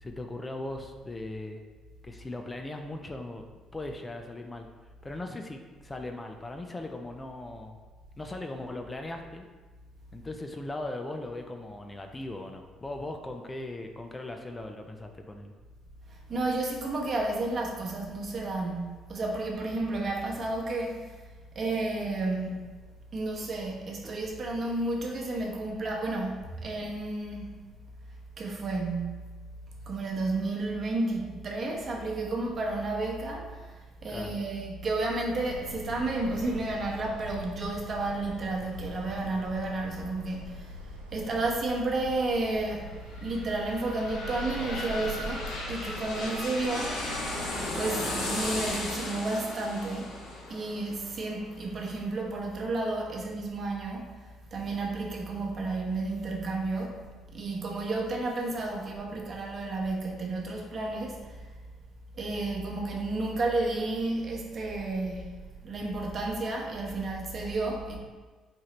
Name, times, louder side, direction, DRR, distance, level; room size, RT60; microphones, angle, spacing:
voice 1, 0.0-1.6 2.0-3.4 3.7-4.7 5.0-7.8 8.2-9.5 10.1-15.5 34.1-34.4, left 2 dB, 20° left, 4 dB, 0.5 m, -39 dB
voice 2, 16.1-21.2 21.5-22.7 23.1-27.6 28.4-29.2 29.9-40.8 41.1-47.0 47.8-50.1 50.5-54.1 54.5-57.0 57.3-61.5 62.1-65.3 65.6-68.0, right 2 dB, 45° right, -1 dB, 1.0 m, -32 dB
sound 1, 35.5-48.9, left 1 dB, 90° right, 0.4 m, -45 dB
sound 2, 42.9-52.5 52.9-53.0, left 2 dB, 65° left, 1.1 m, -36 dB
4.5 x 3.7 x 3.1 m, 1.4 s
figure-of-eight pair, 45°, 0 cm